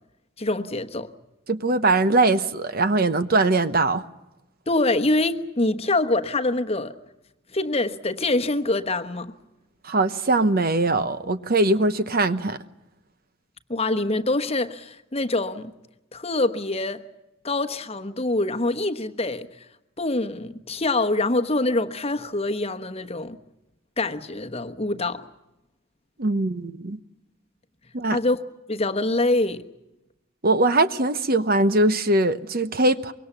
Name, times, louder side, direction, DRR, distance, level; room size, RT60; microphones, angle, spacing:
voice 1, 0.4-1.1 4.7-6.9 7.5-9.3 13.7-15.7 16.1-17.0 17.4-19.5 20.0-23.4 24.0-25.2 28.0-28.4 28.7-29.6, left 2 dB, 30° left, 1.1 m, -25 dB
voice 2, 1.5-4.0 9.8-12.6 26.2-27.0 27.9-28.2 30.4-33.1, right 2 dB, 45° right, 0.9 m, -21 dB
25.0 x 22.0 x 7.2 m
head